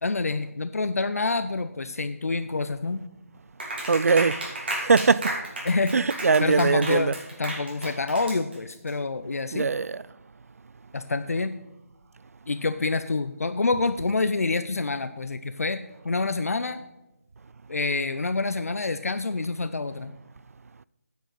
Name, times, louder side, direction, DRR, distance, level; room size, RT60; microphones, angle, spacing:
voice 1, 0.0-3.0 5.6-5.9 6.4-9.7 10.9-11.5 12.5-16.8 17.7-20.1, left 3 dB, 70° left, 0.6 m, -27 dB
Clapping, 3.6-8.9, right 2 dB, 40° right, 2.9 m, -33 dB
voice 2, 3.9-4.5 4.8-5.4 5.9-7.1 9.5-10.0, right 4 dB, 70° right, 0.4 m, -21 dB
9.3 x 7.6 x 5.7 m
figure-of-eight pair, 175°, 8 cm